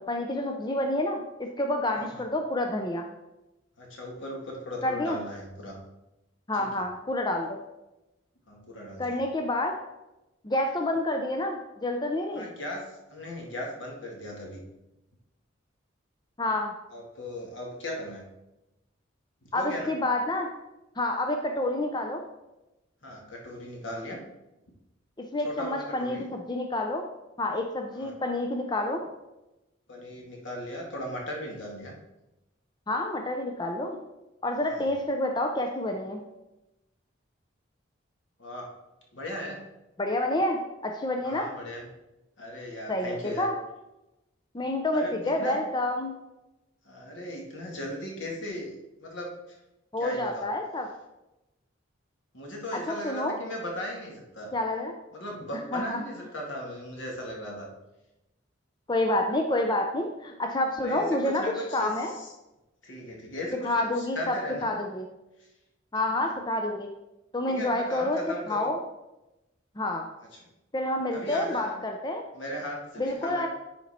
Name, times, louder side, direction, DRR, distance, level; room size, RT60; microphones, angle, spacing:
voice 1, 0.0-3.0 4.8-5.2 6.5-7.6 9.0-9.7 10.4-12.5 16.4-16.7 19.5-20.5 21.0-22.3 25.2-27.0 27.4-29.0 32.9-34.0 34.4-36.2 40.0-41.5 42.9-43.5 44.5-46.2 49.9-50.9 52.9-53.4 54.5-54.9 55.7-56.0 58.9-62.1 63.6-64.3 64.6-65.1 65.9-66.9 67.3-68.2 68.5-68.8 69.8-70.1 70.7-72.2 73.0-73.5, left 1 dB, 20° left, 3 dB, 0.5 m, -28 dB
voice 2, 3.8-5.8 6.5-6.7 8.5-9.2 12.4-14.6 16.9-18.3 19.4-19.9 23.0-24.2 25.4-26.2 27.9-28.1 29.9-31.9 34.6-34.9 38.4-38.7 39.1-39.6 41.2-41.9 42.4-43.5 44.9-45.6 46.8-49.6 50.0-50.5 52.3-54.5 55.1-57.7 60.8-62.3 62.8-64.7 65.4-65.5 67.5-68.7 70.3-70.4 71.1-71.8 72.3-73.5, left 1 dB, 75° left, -1 dB, 2.1 m, -37 dB
10.0 x 4.4 x 4.3 m, 0.96 s
head